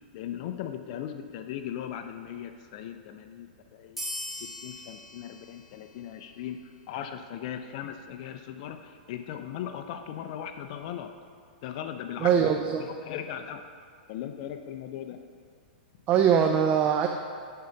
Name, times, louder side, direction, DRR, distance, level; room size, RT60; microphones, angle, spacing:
voice 1, 0.1-4.0 4.4-6.6 6.9-11.1 11.6-13.6 14.1-15.2, left 10 dB, 50° left, 7 dB, 0.5 m, -38 dB
sound 1, 4.0-7.0, left 1 dB, ahead, 1.8 m, -41 dB
voice 2, 12.2-12.8 16.1-17.1, right 8 dB, 30° right, 4 dB, 0.5 m, -22 dB
10.5 x 3.9 x 5.7 m, 2.2 s
hypercardioid pair, 130°, 5 cm